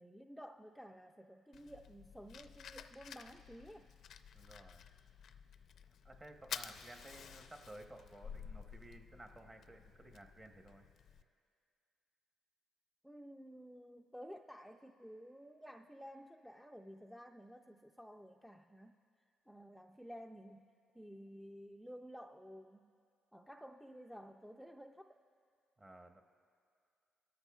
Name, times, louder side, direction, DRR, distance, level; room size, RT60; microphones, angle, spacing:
voice 1, 0.0-3.9 13.0-19.0 19.5-20.7 20.9-22.9 23.3-25.2, equal, ahead, 3 dB, 0.4 m, -53 dB
Fire, 1.5-11.2, left 7 dB, 70° left, 0.5 m, -52 dB
voice 2, 4.3-4.8 6.0-10.8 25.8-26.2, right 1 dB, 25° right, 5 dB, 0.9 m, -55 dB
22.0 x 13.5 x 2.3 m, 2.3 s
cardioid pair, 90°, 0 cm